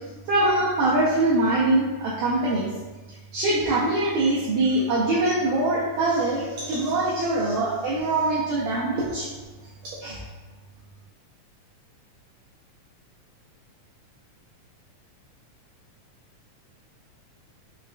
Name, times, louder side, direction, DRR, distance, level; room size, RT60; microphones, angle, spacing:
voice 1, 0.2-2.7 3.3-9.3 10.0-10.2, right 2 dB, 85° right, -6 dB, 1.6 m, -23 dB
5.8 x 2.3 x 2.4 m, 1.3 s
omnidirectional pair, 3.9 m